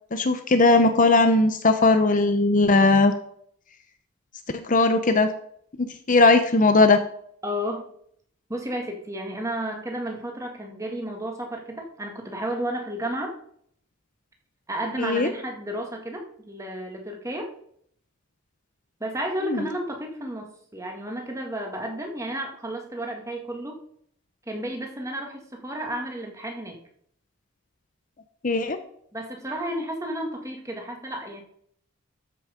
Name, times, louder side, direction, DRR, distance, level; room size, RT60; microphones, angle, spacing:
voice 1, 0.1-3.1 4.5-5.3 5.8-7.0 15.0-15.3 19.5-19.6 28.4-28.8, left 3 dB, 40° left, 8 dB, 0.8 m, -19 dB
voice 2, 7.4-7.9 8.5-13.3 14.7-17.5 19.0-23.8 24.5-26.8 29.1-31.4, right 1 dB, 15° right, 2 dB, 2.0 m, -32 dB
13.0 x 6.2 x 5.1 m, 0.65 s
head